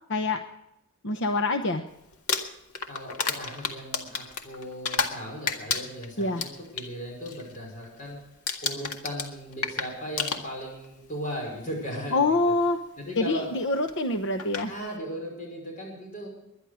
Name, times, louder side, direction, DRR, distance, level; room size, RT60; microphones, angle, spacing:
voice 1, 0.1-0.4 1.0-1.8 6.2-6.4 12.1-12.8 13.2-14.7, left 2 dB, 55° left, 7 dB, 0.9 m, -25 dB
Crumpling crinkling, 2.1-5.2 5.5-6.9 7.2-7.6 7.8-8.1 8.5-10.8 11.8-11.9 13.9-14.0 14.4-14.7, left 5 dB, 85° left, 1.9 m, -31 dB
voice 2, 2.9-8.2 8.6-12.4 13.0-13.5 14.7-16.3, equal, 35° left, 0 dB, 5.6 m, -37 dB
21.5 x 11.0 x 4.9 m, 0.86 s
head